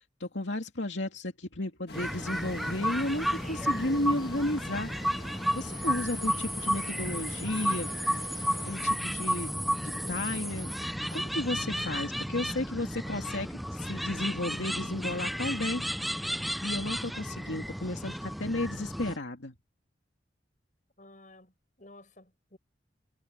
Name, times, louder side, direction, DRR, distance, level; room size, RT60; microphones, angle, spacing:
voice 1, 0.2-4.9 5.5-7.9 8.6-9.5 9.8-10.7 11.1-15.8 16.6-19.5, left 2 dB, 85° left, 2.4 m, -33 dB
sound 1, 1.9-8.9, left 3 dB, 60° left, 2.1 m, -47 dB
sound 2, 1.9-19.2, equal, ahead, 0.4 m, -33 dB
voice 2, 21.0-21.5 21.8-22.6, left 2 dB, 45° left, 6.9 m, -53 dB
head